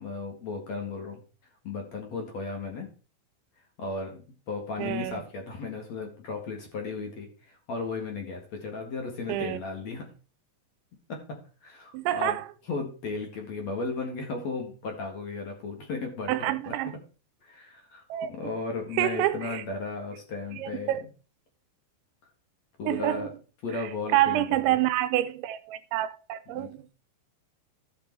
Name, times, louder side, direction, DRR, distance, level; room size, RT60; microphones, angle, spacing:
voice 1, 0.0-2.9 3.6-4.2 4.5-10.1 11.1-12.4 12.6-16.7 17.4-18.0 18.3-21.1 22.8-23.3 23.6-24.8 26.5-26.7, left 4 dB, 50° left, 2.2 m, -35 dB
voice 2, 4.8-5.2 9.3-9.6 11.9-12.4 16.3-17.0 18.1-18.3 19.0-19.6 20.6-21.0 22.9-23.2 24.1-26.8, right 14 dB, 90° right, 3.0 m, -27 dB
14.0 x 6.1 x 4.6 m
omnidirectional pair, 5.2 m